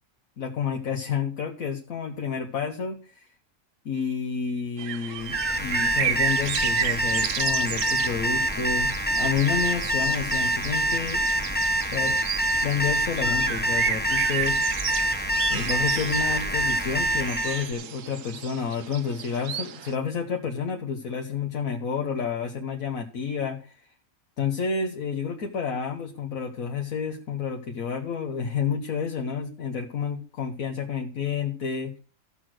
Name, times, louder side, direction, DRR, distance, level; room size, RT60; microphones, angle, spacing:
voice 1, 0.4-3.3 3.8-11.2 11.9-12.3 12.6-14.6 15.5-23.8 24.4-32.0, left 6 dB, 75° left, 3 dB, 1.6 m, -30 dB
sound 1, 4.8-19.9, right 9 dB, 70° right, 1.1 m, -33 dB
Alarm, 5.2-17.7, right 1 dB, 10° left, 1.0 m, -26 dB
14.5 x 6.1 x 6.3 m, 0.40 s
omnidirectional pair, 1.5 m